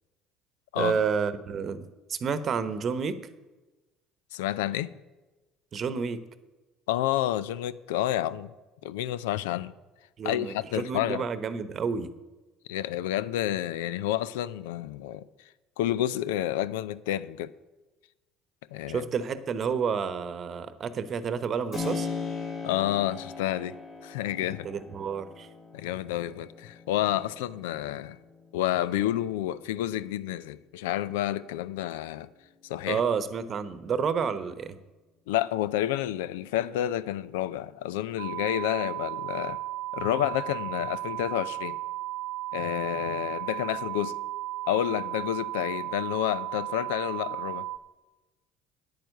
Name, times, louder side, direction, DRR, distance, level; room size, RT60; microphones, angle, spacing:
voice 1, 0.8-3.2 5.7-6.2 10.2-12.1 18.9-22.1 24.6-25.5 32.9-34.8, right 6 dB, 45° right, 1.0 m, -30 dB
voice 2, 4.3-4.9 6.9-8.5 8.8-9.7 10.2-11.3 12.7-15.3 15.8-17.5 18.7-19.1 22.6-23.7 24.0-24.7 25.7-28.2 28.5-32.3 32.6-33.0 35.3-39.6 39.9-41.8 42.5-44.2 44.7-47.7, left 13 dB, 75° left, 0.4 m, -29 dB
Keyboard (musical), 21.7-30.3, left 4 dB, 50° left, 4.3 m, -39 dB
sound 1, 38.2-47.8, right 16 dB, 80° right, 0.7 m, -35 dB
9.6 x 9.0 x 6.5 m
hypercardioid pair, 65°, 0 cm